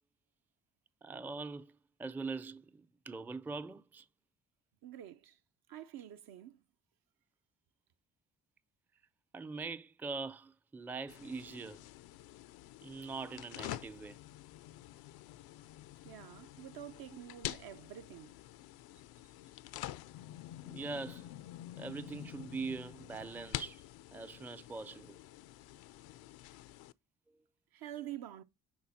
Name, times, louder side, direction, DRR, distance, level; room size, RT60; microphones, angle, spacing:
voice 1, 1.0-4.1 9.3-11.8 12.8-14.2 20.6-21.3 21.7-23.8 24.1-25.2, right 4 dB, 5° right, 0.4 m, -42 dB
voice 2, 4.8-5.4 5.7-6.6 16.0-18.3 27.7-28.4, right 11 dB, 60° right, 0.7 m, -47 dB
sound 1, 11.1-26.9, left 15 dB, 65° left, 0.5 m, -48 dB
9.5 x 4.0 x 2.7 m
hypercardioid pair, 50°, 40 cm